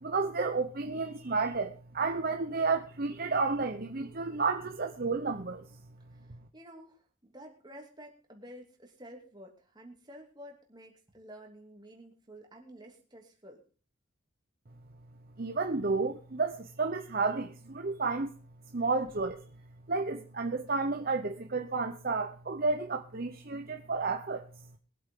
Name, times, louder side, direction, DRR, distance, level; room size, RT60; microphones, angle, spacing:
voice 1, 0.0-5.6 15.4-18.3 18.7-19.4 19.9-24.5, right 4 dB, 45° right, 0.9 m, -31 dB
voice 2, 6.5-13.6, equal, 20° right, 2.8 m, -51 dB
22.5 x 8.3 x 3.8 m
head